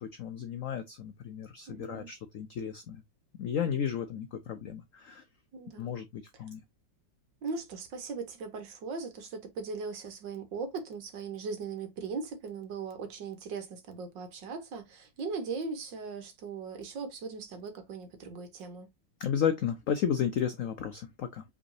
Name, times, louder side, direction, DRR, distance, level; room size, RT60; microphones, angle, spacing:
voice 1, 0.0-3.0 3.4-5.2 5.8-6.6 19.2-21.4, left 8 dB, 80° left, 0.7 m, -33 dB
voice 2, 1.7-2.1 5.5-6.0 7.4-18.9, right 4 dB, 70° right, 1.9 m, -39 dB
5.1 x 3.9 x 2.6 m
omnidirectional pair, 2.1 m